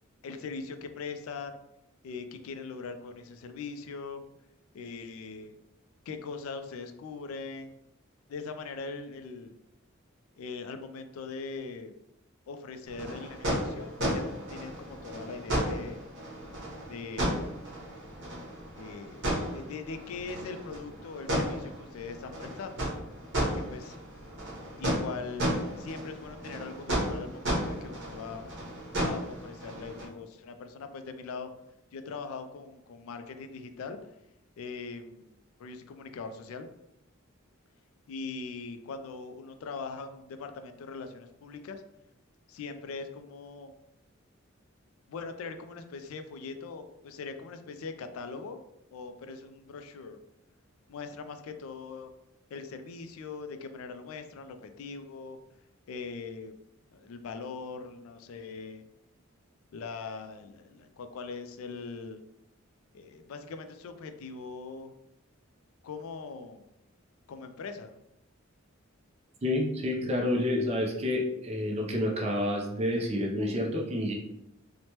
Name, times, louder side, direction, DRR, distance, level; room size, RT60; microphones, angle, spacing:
voice 1, 0.2-1.6 2.0-4.2 4.7-5.6 6.1-7.7 8.3-9.6 10.4-11.9 12.5-16.0 16.8-17.5 18.8-22.9 23.4-24.0 24.8-28.5 29.0-31.5 31.9-34.0 34.6-36.7 38.1-41.8 42.5-43.7 45.1-48.6 48.9-50.2 50.9-52.1 52.5-55.4 55.9-56.5 56.9-58.8 59.7-62.2 62.9-64.9 65.8-66.7 67.3-67.9, left 4 dB, 80° left, 8 dB, 0.3 m, -41 dB
sound 1, 12.9-30.1, equal, 60° right, 0.9 m, -34 dB
voice 2, 69.4-74.1, left 1 dB, 30° right, 0 dB, 0.4 m, -29 dB
3.1 x 2.1 x 2.8 m, 0.84 s
head